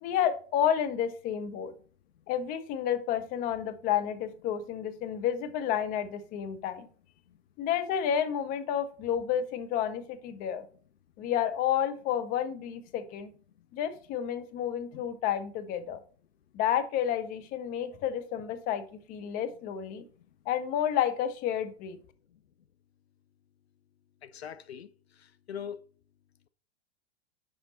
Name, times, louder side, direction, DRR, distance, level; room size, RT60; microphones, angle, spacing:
voice 1, 0.0-1.7 2.3-6.9 7.6-10.7 11.2-13.3 13.7-16.0 16.5-20.0 20.5-22.0, left 9 dB, 25° left, 0.7 m, -30 dB
voice 2, 24.2-24.9 25.2-25.8, left 8 dB, 70° left, 0.5 m, -41 dB
5.9 x 5.3 x 4.2 m
figure-of-eight pair, 95°, 33 cm